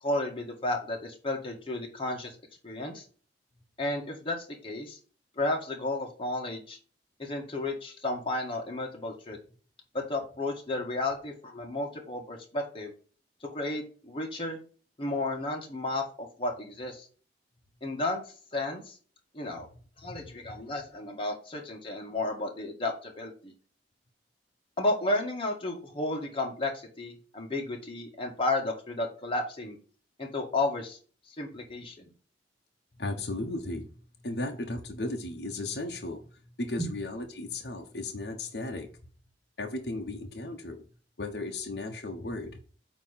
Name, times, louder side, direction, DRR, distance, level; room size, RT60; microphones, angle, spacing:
voice 1, 0.0-2.3 2.6-3.0 3.8-5.0 5.4-6.8 7.2-9.4 9.9-12.9 13.4-14.6 15.0-17.1 17.8-18.2 18.5-19.0 19.3-19.7 20.0-23.5 24.8-29.8 30.2-31.0 31.3-32.1 36.8-36.9, left 2 dB, 30° left, 1 dB, 1.7 m, -32 dB
voice 2, 20.1-20.6 33.0-39.0 39.6-40.8 41.2-42.6, left 2 dB, 65° left, 2 dB, 1.1 m, -36 dB
8.8 x 3.1 x 5.7 m, 0.40 s
head